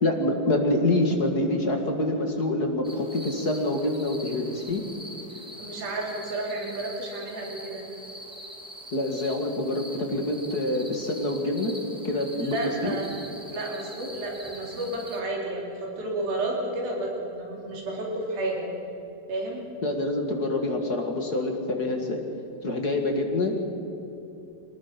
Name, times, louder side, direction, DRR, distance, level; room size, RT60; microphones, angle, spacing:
voice 1, 0.0-4.8 8.9-11.7 12.0-13.0 19.8-22.2 22.6-23.5, left 2 dB, 35° left, 2 dB, 1.8 m, -26 dB
sound 1, 2.8-15.2, equal, 5° right, 1.1 m, -43 dB
voice 2, 5.6-7.8 12.4-13.2 13.5-18.7 19.3-19.6, right 2 dB, 90° right, -1 dB, 5.2 m, -31 dB
25.0 x 19.5 x 5.9 m, 3.0 s
omnidirectional pair, 4.0 m